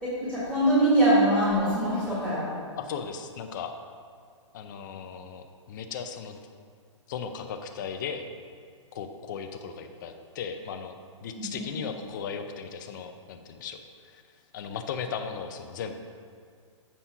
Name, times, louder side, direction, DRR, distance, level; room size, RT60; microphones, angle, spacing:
voice 1, 0.0-2.5 11.4-11.6, right 1 dB, 5° right, -12 dB, 1.7 m, -23 dB
voice 2, 2.7-3.7 4.5-6.4 7.1-8.3 8.9-10.9 11.2-14.2 14.5-16.0, left 6 dB, 40° left, 6 dB, 0.6 m, -37 dB
7.5 x 4.2 x 5.7 m, 2.1 s
hypercardioid pair, 160°, 16 cm